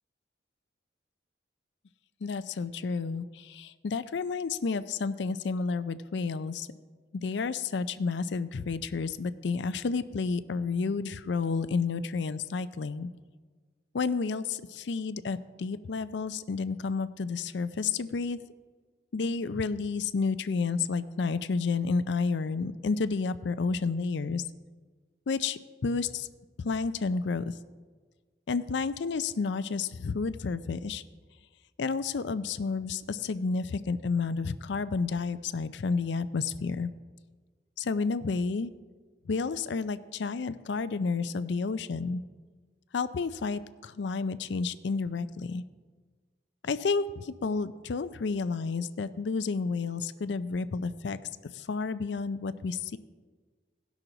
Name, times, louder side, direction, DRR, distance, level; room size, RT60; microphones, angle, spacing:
voice 1, 2.2-6.7 7.2-13.1 13.9-18.4 19.1-24.4 25.3-26.3 26.6-27.5 28.5-31.0 31.8-36.9 37.8-38.7 39.3-42.2 42.9-45.6 46.6-51.2 51.5-53.0, left 4 dB, 70° left, 14 dB, 0.4 m, -31 dB
17.5 x 6.1 x 3.9 m, 1.4 s
head